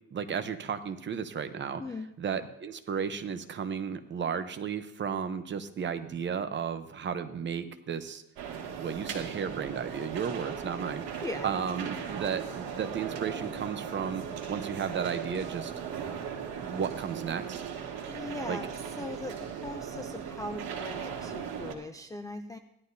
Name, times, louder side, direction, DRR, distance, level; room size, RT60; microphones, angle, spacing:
voice 1, 0.1-1.8 2.2-8.2 8.8-11.0 11.4-15.7 16.6-17.6 18.5-18.6, right 7 dB, 30° right, 9 dB, 0.8 m, -34 dB
sound 1, 8.4-21.7, right 7 dB, 70° right, 2.2 m, -38 dB
voice 2, 18.1-22.6, left 2 dB, 10° left, 7 dB, 0.3 m, -40 dB
16.5 x 12.0 x 2.7 m, 0.82 s
cardioid pair, 145°, 36 cm